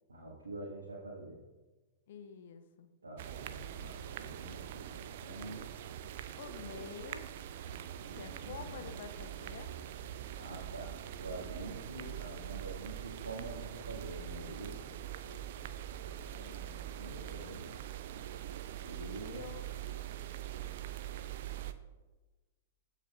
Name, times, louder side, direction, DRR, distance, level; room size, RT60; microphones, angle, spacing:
voice 1, 0.1-1.4 3.0-5.7 8.0-8.8 10.4-14.8 17.0-17.7 18.8-19.4, right 2 dB, 75° right, -5 dB, 1.8 m, -46 dB
voice 2, 2.1-2.9 6.4-7.3 8.1-9.7 16.4-16.8 19.3-19.7, left 7 dB, 55° left, 8 dB, 0.9 m, -48 dB
sound 1, 3.2-21.7, right 11 dB, 50° right, 0.5 m, -43 dB
16.5 x 5.7 x 2.5 m, 1.2 s
figure-of-eight pair, 105°, 0 cm